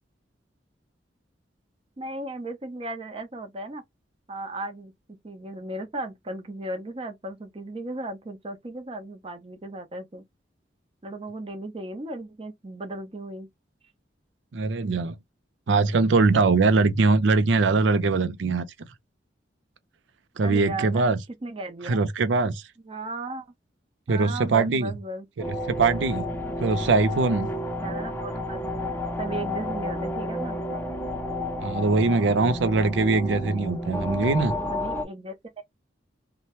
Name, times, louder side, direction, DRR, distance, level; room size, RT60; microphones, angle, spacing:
voice 1, 2.0-3.8 4.3-10.2 11.0-13.5 20.4-21.1 21.4-22.0 22.8-23.5 24.1-25.3 27.8-28.7 29.2-30.8 34.7-35.6, right 2 dB, 30° right, 0.7 m, -36 dB
voice 2, 14.5-15.2 15.7-18.7 20.4-21.2 21.8-22.6 24.1-24.9 25.5-26.2 26.6-27.5 31.6-34.5, right 3 dB, 85° right, 0.5 m, -22 dB
sound 1, 25.4-35.0, left 1 dB, 10° left, 0.5 m, -31 dB
2.9 x 2.1 x 2.9 m
head